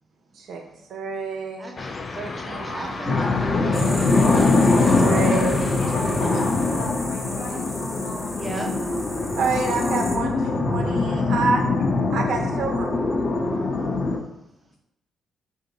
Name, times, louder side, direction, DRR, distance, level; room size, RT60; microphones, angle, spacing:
voice 1, 0.9-1.7 2.5-3.1 4.6-5.8 6.3-6.4 9.3-11.6 12.1-12.9, right 4 dB, 70° right, 3 dB, 0.7 m, -28 dB
voice 2, 1.6-4.4 8.3-8.7 10.8-11.0, right 2 dB, 20° right, 2 dB, 0.7 m, -36 dB
sound 1, 1.8-6.9, left 3 dB, 35° left, 0.4 m, -35 dB
sound 2, 3.1-14.2, left 3 dB, 55° left, 0.8 m, -22 dB
sound 3, 3.7-10.2, left 1 dB, 20° left, 0.8 m, -37 dB
voice 3, 5.8-8.4, left 2 dB, 85° left, -2 dB, 1.0 m, -36 dB
3.5 x 2.6 x 4.0 m, 0.79 s
cardioid pair, 90°, 0 cm